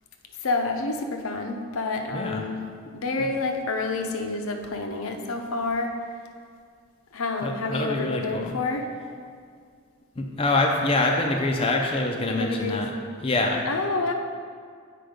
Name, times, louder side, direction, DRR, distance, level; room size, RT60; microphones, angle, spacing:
voice 1, 0.4-2.6 2.9-5.9 7.1-8.9 12.3-12.8 13.6-14.1, left 3 dB, 75° left, 4 dB, 0.7 m, -28 dB
voice 2, 7.4-8.6 10.2-12.9 13.2-13.7, left 2 dB, 25° left, 1 dB, 0.5 m, -25 dB
7.7 x 4.5 x 5.1 m, 2.1 s
head